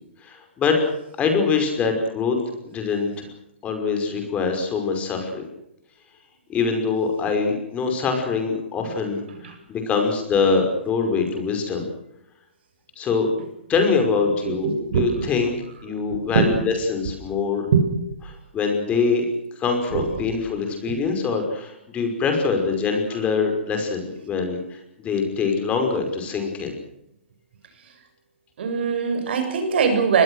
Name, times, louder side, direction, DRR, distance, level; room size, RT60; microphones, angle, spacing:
voice 1, 0.2-0.8 1.2-3.3 3.6-5.4 6.5-9.2 9.7-11.9 13.0-13.3 13.7-14.7 14.9-15.6 15.8-17.7 18.3-19.2 19.6-24.8 25.0-26.8, left 5 dB, 20° left, 5 dB, 5.6 m, -24 dB
voice 2, 14.4-15.3 16.1-16.5 17.7-17.9 19.9-20.4 20.9-21.0 28.6-30.2, right 5 dB, 60° right, 6 dB, 7.3 m, -22 dB
25.5 x 21.0 x 6.5 m, 0.81 s
hypercardioid pair, 130°, 7 cm